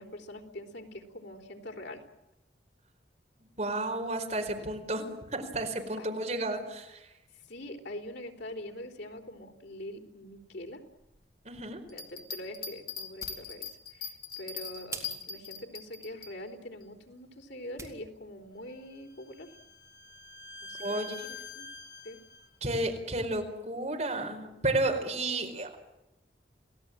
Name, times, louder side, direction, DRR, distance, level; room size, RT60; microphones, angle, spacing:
voice 1, 0.0-2.0 6.0-6.1 7.5-10.8 11.9-19.5 20.6-21.7 22.0-22.2, left 1 dB, 90° left, 3 dB, 4.0 m, -44 dB
voice 2, 3.6-7.1 11.4-11.8 20.8-21.2 22.6-25.8, right 2 dB, 40° right, 3 dB, 4.6 m, -32 dB
sound 1, 11.9-16.3, left 6 dB, 55° left, 3.3 m, -40 dB
sound 2, 12.9-18.0, right 4 dB, 15° right, 4.2 m, -49 dB
Bowed string instrument, 18.7-22.5, left 3 dB, 25° left, 2.5 m, -46 dB
29.5 x 18.0 x 9.0 m, 0.94 s
head